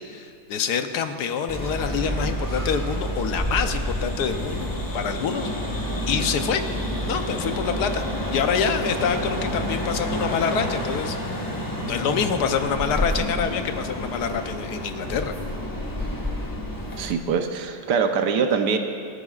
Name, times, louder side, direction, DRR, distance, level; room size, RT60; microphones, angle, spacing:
voice 1, 0.1-4.7 4.9-5.5 6.1-6.6 7.1-8.0 8.3-11.2 11.8-15.4, left 7 dB, 80° left, 7 dB, 1.3 m, -26 dB
sound 1, 1.5-17.1, equal, 15° left, 1.2 m, -29 dB
voice 2, 17.0-18.8, right 6 dB, 85° right, 5 dB, 1.4 m, -23 dB
24.0 x 13.0 x 2.4 m, 2.4 s
omnidirectional pair, 1.7 m